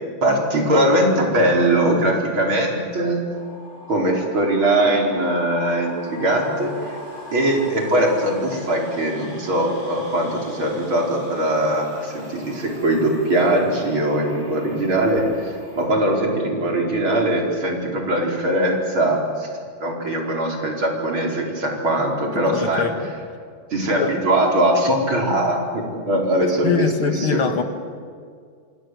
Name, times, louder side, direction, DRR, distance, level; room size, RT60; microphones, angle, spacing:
voice 1, 0.2-3.2 3.9-7.0 7.3-19.5 19.8-22.9 23.7-27.5, right 1 dB, 80° right, 0 dB, 5.5 m, -21 dB
sound 1, 3.3-15.9, equal, 55° right, 8.4 m, -40 dB
voice 2, 22.5-23.1 24.0-24.1 26.6-27.6, left 6 dB, 80° left, 8 dB, 2.7 m, -23 dB
27.0 x 27.0 x 7.9 m, 2.1 s
omnidirectional pair, 2.2 m